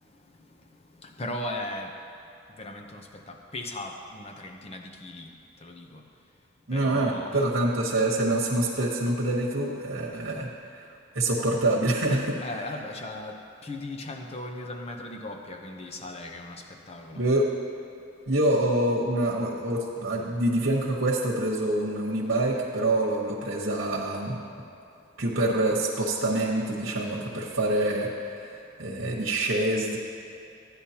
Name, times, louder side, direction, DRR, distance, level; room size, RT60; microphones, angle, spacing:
voice 1, 0.0-1.9 2.6-5.3 5.6-6.0 6.7-7.5 12.1-17.2, left 1 dB, 30° left, 3 dB, 0.7 m, -38 dB
voice 2, 6.7-10.5 10.8-10.9 11.1-12.4 17.1-17.5 18.3-24.4 25.2-28.5 28.8-30.0, right 1 dB, 75° right, -3 dB, 1.2 m, -26 dB
14.0 x 9.8 x 2.9 m, 2.7 s
head